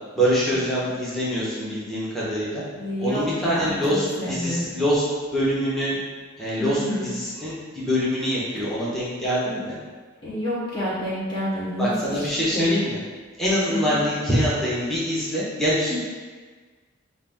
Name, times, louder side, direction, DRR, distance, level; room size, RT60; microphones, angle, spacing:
voice 1, 0.2-2.6 3.0-5.0 5.3-6.0 6.4-9.7 11.8-13.0 13.4-16.0, equal, ahead, -9 dB, 1.0 m, -24 dB
voice 2, 2.7-3.7 4.2-4.7 6.6-7.1 10.2-12.8 13.7-14.0 15.9-16.0, left 1 dB, 25° left, -9 dB, 0.9 m, -28 dB
5.6 x 2.6 x 3.5 m, 1.4 s
head